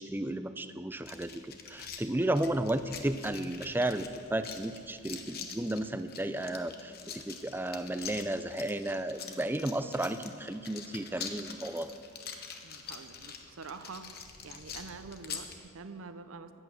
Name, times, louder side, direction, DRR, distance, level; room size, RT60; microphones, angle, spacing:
voice 1, 0.0-11.9, right 1 dB, 10° right, 11 dB, 0.4 m, -33 dB
sound 1, 1.1-15.6, left 6 dB, 50° left, 1.0 m, -45 dB
voice 2, 12.6-14.1 14.4-16.6, right 4 dB, 90° right, 11 dB, 0.7 m, -46 dB
14.5 x 9.0 x 6.2 m, 2.5 s
head